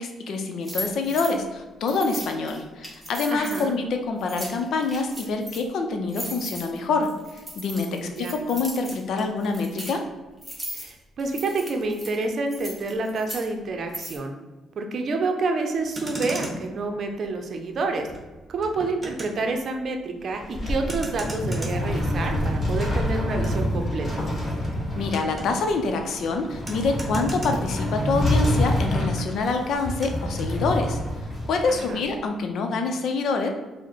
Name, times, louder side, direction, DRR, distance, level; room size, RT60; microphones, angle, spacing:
voice 1, 0.0-10.0 25.0-31.0 31.5-33.5, left 3 dB, 70° left, 4 dB, 0.6 m, -26 dB
sound 1, 0.6-1.3 1.9-3.6 4.2-5.6 6.1-9.9 10.4-10.9 11.2-13.4 13.9-14.2, equal, 5° right, 1.3 m, -37 dB
voice 2, 3.3-3.8 8.0-8.4 10.7-14.3 14.8-18.1 18.5-24.2 31.7-32.0, right 3 dB, 55° right, 4 dB, 0.6 m, -28 dB
Motor vehicle (road), 15.7-28.4 28.6-30.6, right 1 dB, 20° right, 1.1 m, -40 dB
sound 2, 20.2-32.1, left 1 dB, 30° left, 1.4 m, -27 dB
4.7 x 2.2 x 4.4 m, 1.2 s
cardioid pair, 90°, 0 cm